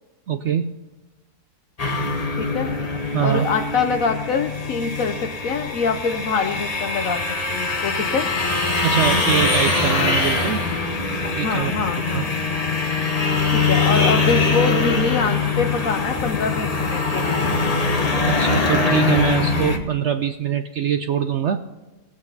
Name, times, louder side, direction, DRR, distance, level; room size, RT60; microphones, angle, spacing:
voice 1, 0.3-0.8 3.1-3.5 8.8-10.7 11.3-11.7 12.1-12.2 18.2-21.7, right 9 dB, 65° right, 8 dB, 0.7 m, -23 dB
sound 1, 1.8-19.8, left 3 dB, 30° left, 1.0 m, -22 dB
voice 2, 2.4-2.7 3.2-7.2 7.5-8.3 11.4-12.3 13.5-17.5, left 5 dB, 65° left, 6 dB, 1.1 m, -24 dB
18.5 x 8.3 x 4.0 m, 1.1 s
omnidirectional pair, 1.7 m